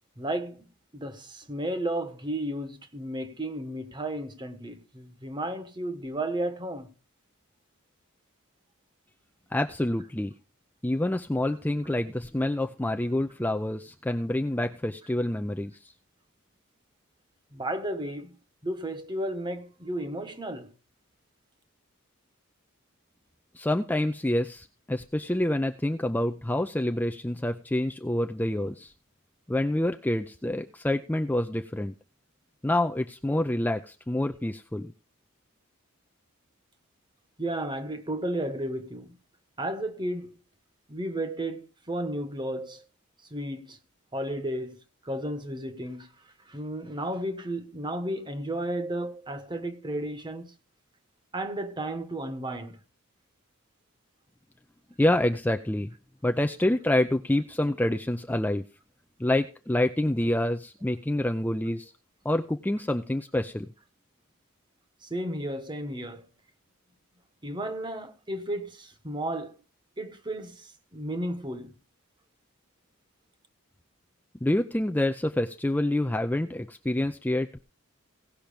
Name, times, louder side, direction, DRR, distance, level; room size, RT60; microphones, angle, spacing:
voice 1, 0.2-0.7 0.9-6.9 17.5-18.4 18.6-20.7 37.4-39.2 39.6-40.4 40.9-42.9 43.3-43.8 44.1-44.8 45.0-46.1 46.5-50.5 51.3-52.8 65.0-66.2 67.4-69.6 70.0-71.7, right 1 dB, 20° right, 1.2 m, -33 dB
voice 2, 9.5-10.3 10.8-15.9 23.5-28.9 29.5-31.9 32.6-34.9 55.0-55.9 56.2-58.6 59.2-61.9 62.2-63.7 74.4-77.6, left 1 dB, 10° left, 0.4 m, -27 dB
17.5 x 6.0 x 5.1 m
head